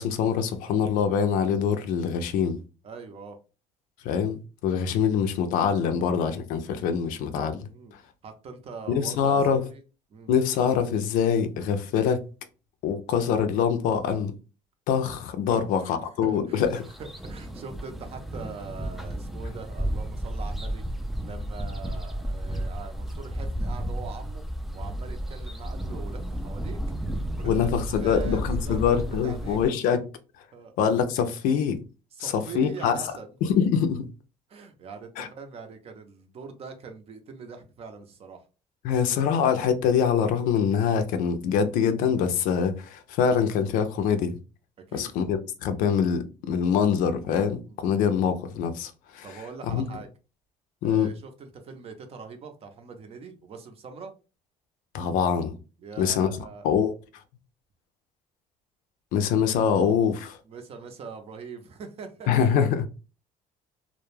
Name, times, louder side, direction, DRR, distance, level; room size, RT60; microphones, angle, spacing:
voice 1, 0.0-2.6 4.0-8.0 8.9-9.6 10.3-12.3 12.8-14.3 14.9-16.8 27.4-30.0 30.8-31.8 32.2-33.0 33.4-34.1 35.2-35.3 38.8-44.4 44.9-49.4 49.7-49.8 50.8-51.1 54.9-55.6 56.0-56.3 56.6-56.9 59.1-60.4 62.3-62.9, left 7 dB, 75° left, 0.4 m, -24 dB
voice 2, 2.8-3.4 7.7-7.9 8.2-9.8 10.1-10.4 15.5-15.9 16.2-16.7 17.0-20.8 21.2-24.4 24.7-26.8 27.3-27.5 27.9-29.6 30.5-30.7 32.1-33.3 34.5-38.4 44.8-45.1 47.7-47.8 49.2-50.1 50.8-54.1 55.8-56.7 60.5-62.6, right 5 dB, 45° right, 0.6 m, -42 dB
sound 1, 16.6-29.7, right 1 dB, ahead, 0.3 m, -33 dB
2.2 x 2.1 x 3.1 m
cardioid pair, 115°, 14 cm